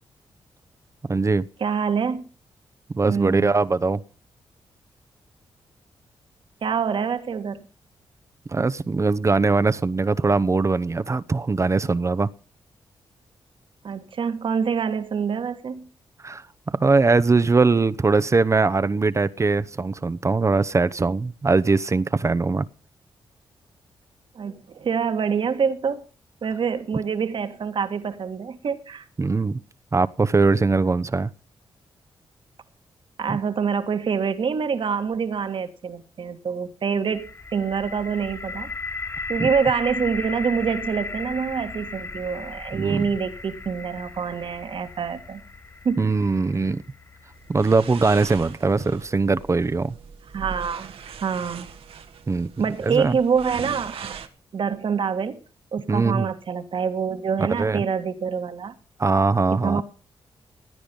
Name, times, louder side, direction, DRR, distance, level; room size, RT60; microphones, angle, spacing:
voice 1, 1.1-1.5 2.9-4.0 8.5-12.3 16.2-16.4 16.8-22.7 29.2-29.6 29.9-31.3 33.3-33.4 39.4-39.5 42.7-43.0 46.0-46.8 47.5-50.0 52.3-52.5 52.8-53.2 55.9-56.3 57.6-57.8 59.0-59.8, right 3 dB, 30° right, 0.9 m, -21 dB
voice 2, 1.6-2.3 3.1-3.5 6.6-7.6 13.8-15.9 24.4-26.0 26.4-29.1 33.2-38.7 39.3-45.4 45.8-46.1 50.3-50.9 51.2-51.7 52.6-54.2 54.5-55.4 55.7-58.7 59.5-59.8, right 6 dB, 60° right, 1.9 m, -26 dB
sound 1, 37.1-49.0, left 3 dB, 25° left, 1.1 m, -36 dB
sound 2, 47.4-54.3, right 6 dB, 80° right, 1.6 m, -40 dB
17.0 x 9.9 x 5.4 m
cardioid pair, 65°, 10 cm